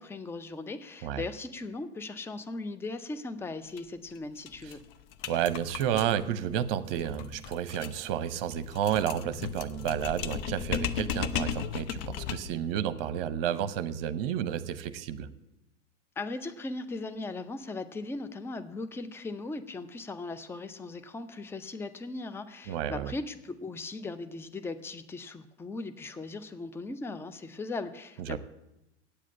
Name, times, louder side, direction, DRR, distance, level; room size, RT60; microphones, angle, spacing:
voice 1, 0.0-4.8 16.2-28.4, left 3 dB, 5° left, 10 dB, 0.5 m, -38 dB
sound 1, 3.7-3.8 4.1-4.2 4.5-12.6, left 8 dB, 50° left, 0.8 m, -36 dB
voice 2, 5.3-15.3 22.7-23.1 28.2-28.4, right 10 dB, 50° right, 14 dB, 0.9 m, -31 dB
8.7 x 7.4 x 8.7 m, 0.91 s
figure-of-eight pair, 85°, 36 cm